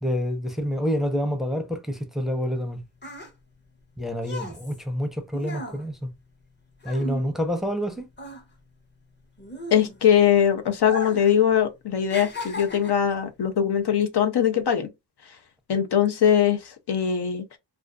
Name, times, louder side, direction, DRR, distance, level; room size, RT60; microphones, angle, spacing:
voice 1, 0.0-2.8 4.0-6.1 6.8-8.1, equal, ahead, 0.6 m, -27 dB
sound 1, 2.5-7.9 8.1-10.3 10.8-11.4 11.7-13.1 13.8-14.0, left 1 dB, 25° left, 0.8 m, -37 dB
voice 2, 9.7-14.9 15.7-17.4, left 9 dB, 75° left, 0.6 m, -21 dB
2.5 x 2.3 x 2.2 m
cardioid pair, 45°, 40 cm